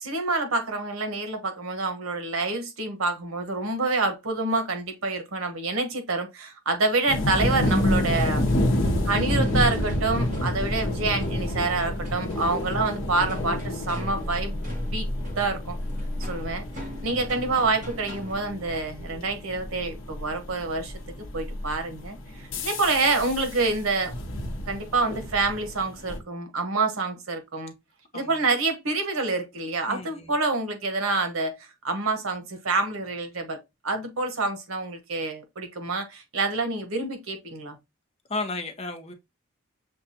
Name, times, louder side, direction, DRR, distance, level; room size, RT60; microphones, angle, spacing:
voice 1, 0.0-8.5 9.0-14.6 14.9-15.1 15.4-15.8 16.2-20.9 21.3-24.1 24.7-27.7 28.1-31.6 31.8-37.8, right 3 dB, 90° right, 1.1 m, -27 dB
sound 1, 7.1-26.2, left 1 dB, 70° left, 0.8 m, -29 dB
sound 2, 7.6-18.6, equal, 40° right, 1.4 m, -43 dB
voice 2, 29.9-30.3 38.3-39.1, left 2 dB, 30° left, 0.7 m, -33 dB
6.7 x 2.4 x 2.7 m
head